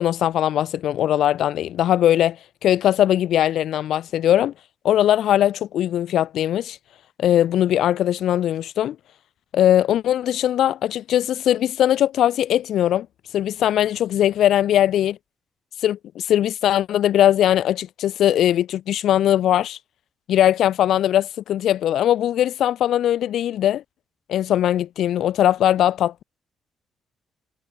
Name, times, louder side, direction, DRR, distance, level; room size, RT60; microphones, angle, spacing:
voice 1, 0.0-4.5 4.8-6.8 7.2-9.0 9.5-13.1 13.3-15.2 15.8-19.8 20.3-23.8 24.3-26.2, left 11 dB, 75° left, 3.0 m, -20 dB
cardioid pair, 90°, 0 cm